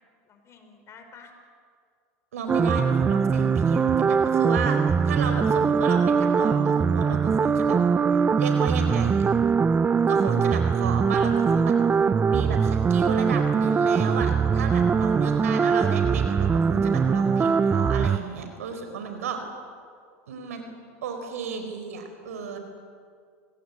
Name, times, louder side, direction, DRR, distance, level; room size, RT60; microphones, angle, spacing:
voice 1, 0.2-1.3 14.7-15.9, left 5 dB, 35° left, 5 dB, 5.0 m, -51 dB
voice 2, 2.3-4.8 5.0-7.8 8.4-9.3 10.1-11.7 12.3-19.4 20.3-20.6 21.0-22.6, right 5 dB, 85° right, 6 dB, 4.4 m, -33 dB
sound 1, 2.5-18.2, right 6 dB, 20° right, 0.7 m, -22 dB
26.5 x 19.0 x 8.5 m, 2.1 s
hypercardioid pair, 100°, 8 cm